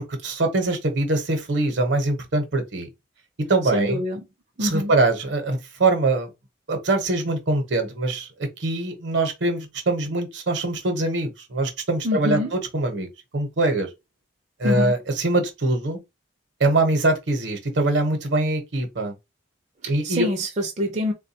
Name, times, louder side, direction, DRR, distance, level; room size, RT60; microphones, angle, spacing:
voice 1, 0.2-2.9 3.5-4.0 4.6-6.3 6.7-8.3 8.6-13.1 13.3-13.9 14.6-16.0 16.6-19.1 19.9-20.3, right 2 dB, 70° right, 0.8 m, -23 dB
voice 2, 3.7-4.2 4.6-4.9 12.0-12.5 14.6-14.9 19.8-21.1, left 1 dB, 35° right, 0.5 m, -25 dB
3.5 x 2.2 x 2.7 m
head